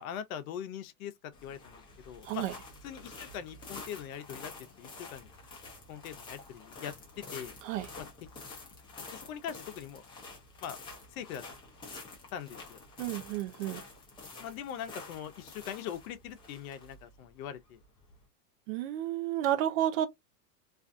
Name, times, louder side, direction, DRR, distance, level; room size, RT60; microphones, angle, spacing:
voice 1, 0.0-1.8 2.1-2.5 2.8-4.5 4.8-5.3 5.9-6.9 7.3-7.5 8.0-8.1 9.1-10.0 10.6-10.8 11.1-11.4 12.3-12.8 14.4-17.8, left 9 dB, 60° left, 0.7 m, -41 dB
sound 1, 1.3-18.2, left 3 dB, 10° left, 0.4 m, -48 dB
voice 2, 13.0-13.8 18.7-20.1, right 12 dB, 55° right, 0.6 m, -31 dB
2.5 x 2.4 x 2.5 m
supercardioid pair, 130°, 48 cm